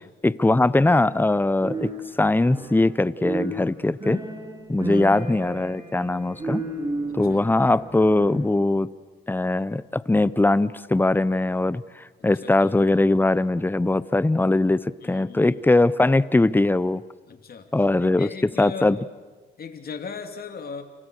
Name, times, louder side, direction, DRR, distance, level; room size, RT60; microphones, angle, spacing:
voice 1, 0.2-1.9 2.2-4.2 4.7-6.6 7.1-8.9 9.3-11.8 12.2-17.0 17.7-18.3 18.6-19.0, left 2 dB, 10° left, 18 dB, 0.8 m, -21 dB
sound 1, 1.6-8.5, right 2 dB, 20° right, 7.2 m, -33 dB
voice 2, 4.8-5.2 7.1-7.4 12.2-12.7 15.0-15.6 17.3-17.7 18.0-18.9 19.6-20.8, left 5 dB, 50° left, 6 dB, 2.9 m, -38 dB
30.0 x 28.0 x 6.5 m, 1.4 s
cardioid pair, 90°, 20 cm